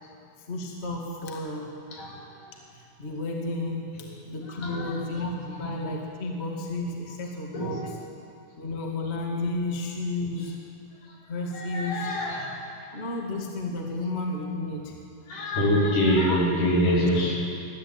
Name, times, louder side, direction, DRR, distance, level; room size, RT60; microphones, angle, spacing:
voice 1, 0.5-1.7 2.7-8.0 8.6-10.5 11.3-12.1 12.9-14.9 15.6-15.9, left 2 dB, 20° left, 0 dB, 1.9 m, -32 dB
voice 2, 1.9-2.3 4.0-4.1 4.5-5.3 5.6-5.8 7.5-7.9 10.4-10.5 11.5-12.5 15.3-17.4, equal, 60° left, -2 dB, 4.4 m, -25 dB
21.0 x 14.5 x 9.0 m, 2.4 s
omnidirectional pair, 4.4 m